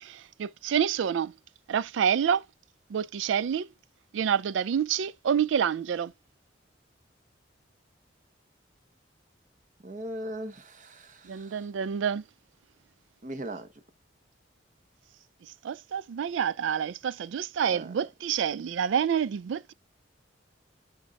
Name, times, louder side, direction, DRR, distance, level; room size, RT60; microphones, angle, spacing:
voice 1, 0.0-1.3 1.7-2.4 2.9-3.7 4.1-6.1 11.2-12.2 15.6-19.7, right 8 dB, 80° right, 0.3 m, -28 dB
voice 2, 9.8-11.7 13.2-13.7 17.6-17.9, right 1 dB, 40° right, 0.9 m, -39 dB
9.4 x 5.3 x 2.4 m
head